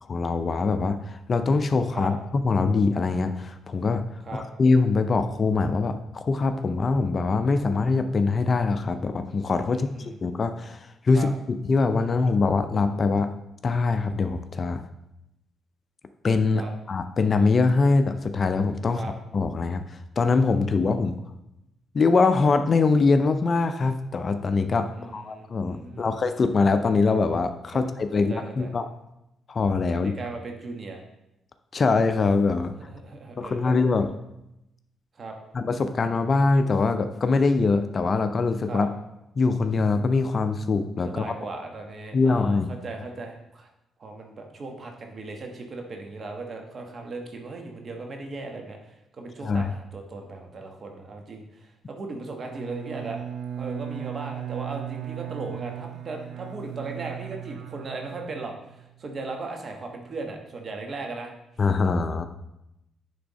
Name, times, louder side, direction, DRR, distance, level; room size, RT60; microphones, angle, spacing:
voice 1, 0.1-4.0 4.3-13.3 13.6-14.8 16.2-19.1 19.3-21.1 21.9-28.9 29.5-30.1 31.7-32.7 33.4-34.1 35.5-38.9 39.4-41.2 42.1-42.7 49.4-49.7 61.6-62.2, left 4 dB, 40° left, 9 dB, 0.5 m, -23 dB
voice 2, 9.7-10.2 11.1-11.3 16.5-16.7 18.9-19.1 24.9-26.1 28.3-28.7 29.9-31.0 32.9-33.8 35.1-35.4 38.7-38.9 41.1-43.7 44.0-53.2 53.6-61.3, right 3 dB, 45° right, 3 dB, 1.3 m, -37 dB
Bowed string instrument, 52.5-59.1, right 10 dB, 65° right, 0.4 m, -37 dB
9.6 x 3.5 x 4.1 m, 0.88 s
cardioid pair, 90°, 0 cm